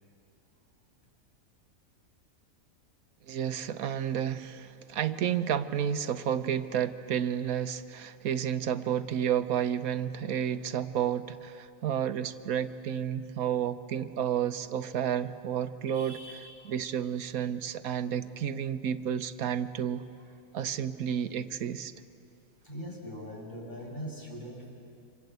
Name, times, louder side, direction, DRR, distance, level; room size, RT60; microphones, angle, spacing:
voice 1, 3.3-16.2 16.6-20.0 20.5-21.9, right 9 dB, 85° right, 10 dB, 1.3 m, -31 dB
voice 2, 15.9-16.7 22.6-24.7, equal, 30° left, -2 dB, 6.2 m, -42 dB
28.5 x 26.0 x 8.1 m, 2.6 s
omnidirectional pair, 1.5 m